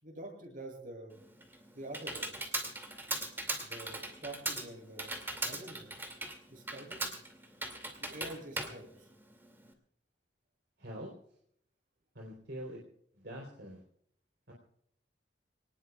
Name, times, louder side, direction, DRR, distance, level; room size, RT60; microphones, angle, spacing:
voice 1, 0.0-1.2 1.7-2.5 3.6-6.0 6.5-7.1 8.0-9.1, right 1 dB, 50° right, 1 dB, 7.7 m, -47 dB
Computer keyboard, 1.1-9.7, right 2 dB, 10° right, 2.5 m, -39 dB
voice 2, 10.8-11.1 12.1-12.8 13.1-13.8 14.5-14.6, equal, 70° right, -1 dB, 3.8 m, -44 dB
26.0 x 19.0 x 2.4 m, 0.66 s
head